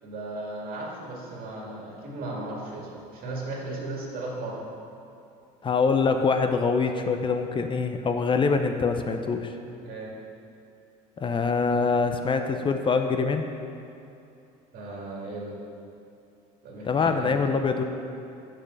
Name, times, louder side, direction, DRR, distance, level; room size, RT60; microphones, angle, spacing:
voice 1, 0.0-4.7 9.8-10.1 14.7-15.6 16.6-17.4, right 2 dB, 60° right, -2 dB, 2.1 m, -36 dB
voice 2, 5.6-9.5 11.2-13.5 16.9-17.8, left 4 dB, 30° left, 6 dB, 0.6 m, -24 dB
6.6 x 6.0 x 6.6 m, 2.7 s
supercardioid pair, 95°, 17 cm